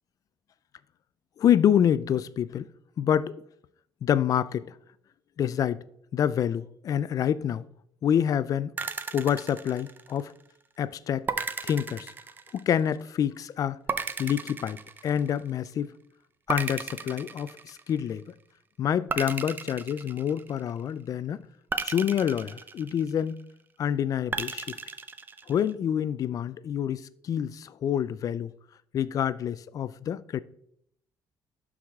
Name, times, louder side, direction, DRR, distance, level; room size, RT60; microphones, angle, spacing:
voice 1, 1.4-2.7 3.0-3.3 4.0-4.7 5.4-5.8 6.1-7.6 8.0-8.7 9.1-10.3 10.8-11.3 11.6-12.1 12.5-13.8 14.2-15.9 16.5-18.2 18.8-21.4 21.8-23.4 23.8-24.8 25.5-28.5 28.9-30.4, left 9 dB, 45° left, 0.4 m, -27 dB
sound 1, 8.8-10.4 11.3-12.9 13.9-15.6 16.5-18.1 19.1-20.8 21.7-23.4 24.3-25.7, right 4 dB, 25° right, 0.5 m, -35 dB
11.5 x 4.8 x 3.5 m
cardioid pair, 140°, 8 cm